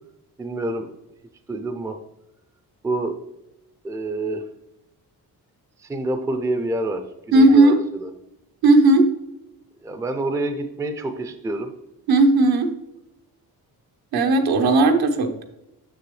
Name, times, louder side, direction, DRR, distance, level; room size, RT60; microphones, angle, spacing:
voice 1, 0.4-0.9 1.5-2.0 2.8-3.2 3.8-4.4 5.9-8.1 9.8-11.7, right 2 dB, 10° right, 8 dB, 0.4 m, -27 dB
voice 2, 7.3-7.8 8.6-9.1 12.1-12.7 14.1-15.4, right 2 dB, 80° right, 6 dB, 1.0 m, -15 dB
6.8 x 6.8 x 3.2 m, 0.90 s
wide cardioid pair, 165°, 37 cm